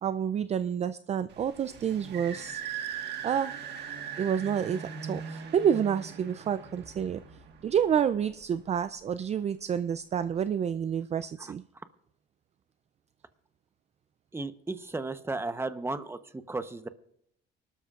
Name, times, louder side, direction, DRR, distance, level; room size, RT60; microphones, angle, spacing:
voice 1, 0.0-2.6 3.2-3.5 4.2-7.2 7.6-11.6, right 8 dB, 35° right, 13 dB, 0.4 m, -29 dB
sound 1, 1.3-8.6, right 7 dB, 60° right, 1.5 m, -40 dB
voice 2, 14.3-16.9, right 3 dB, 10° right, 11 dB, 0.9 m, -34 dB
24.5 x 12.5 x 2.5 m, 0.73 s
cardioid pair, 105°, 19 cm